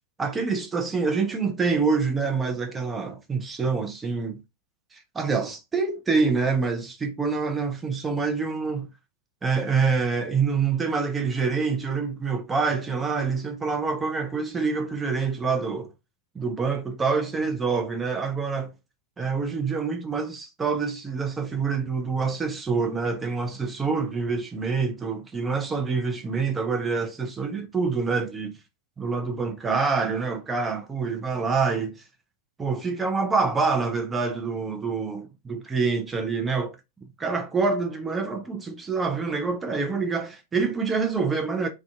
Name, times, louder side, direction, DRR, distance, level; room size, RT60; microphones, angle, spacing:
voice 1, 0.2-4.4 4.9-8.9 9.4-15.9 16.3-18.7 19.2-28.6 29.0-32.0 32.6-36.8 37.2-41.7, right 4 dB, 15° right, 0.4 m, -26 dB
2.4 x 2.2 x 2.4 m
figure-of-eight pair, 90°, 0 cm